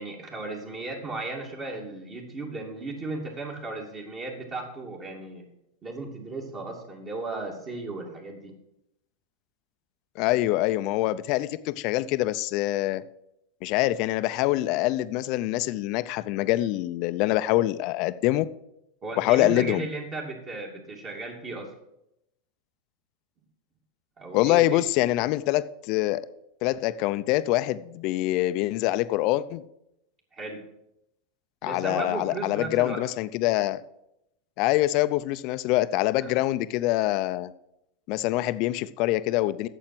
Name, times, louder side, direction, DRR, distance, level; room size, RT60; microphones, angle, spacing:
voice 1, 0.0-5.4 5.8-8.5 19.0-21.7 24.2-24.8 30.3-30.6 31.6-33.0 36.2-36.3, right 3 dB, 30° right, -1 dB, 2.7 m, -35 dB
voice 2, 10.2-13.0 13.6-18.4 19.2-19.9 24.3-26.2 26.6-29.6 31.6-33.8 34.6-37.5 38.1-39.7, left 16 dB, 50° left, 14 dB, 0.6 m, -25 dB
8.9 x 7.2 x 7.8 m, 0.84 s
hypercardioid pair, 120°, 0 cm